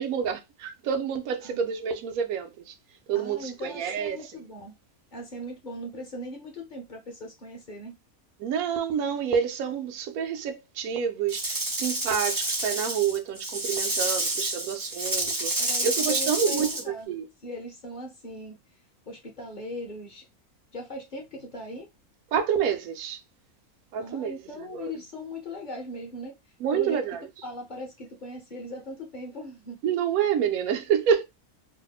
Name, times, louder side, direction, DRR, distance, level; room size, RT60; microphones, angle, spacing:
voice 1, 0.0-2.7 3.1-4.3 8.4-16.7 17.1-17.3 22.3-23.2 23.9-24.9 26.6-27.2 29.8-31.2, right 7 dB, 75° right, 1.1 m, -28 dB
voice 2, 3.1-4.8 5.1-7.9 15.6-17.2 17.4-18.6 19.1-20.3 20.7-21.9 24.0-26.4 26.7-27.0 27.4-29.8, left 1 dB, 40° left, 0.8 m, -39 dB
Rattle / Rattle (instrument), 11.3-16.8, right 2 dB, 35° right, 0.3 m, -29 dB
2.9 x 2.2 x 4.0 m
omnidirectional pair, 1.6 m